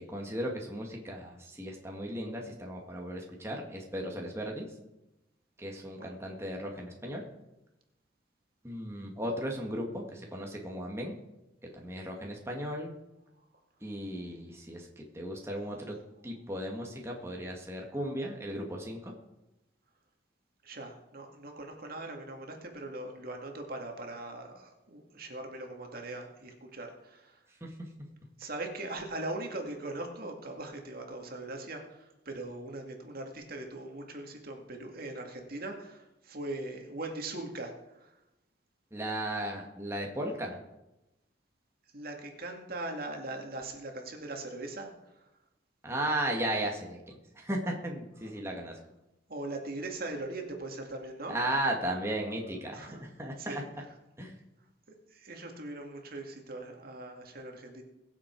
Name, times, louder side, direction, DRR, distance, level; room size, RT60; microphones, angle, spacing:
voice 1, 0.0-4.7 5.6-7.2 8.6-11.1 11.7-12.9 13.8-16.0 16.2-19.1 27.6-27.7 28.4-28.5 38.9-40.6 45.8-48.8 51.3-53.6 54.2-54.4, right 1 dB, 15° right, 0 dB, 1.8 m, -36 dB
voice 2, 20.6-27.4 28.4-38.1 41.9-44.9 48.2-48.3 49.3-51.4 52.7-53.0 53.4-53.6 55.1-57.8, right 2 dB, 55° right, 3 dB, 2.2 m, -40 dB
22.0 x 7.5 x 4.7 m, 0.94 s
head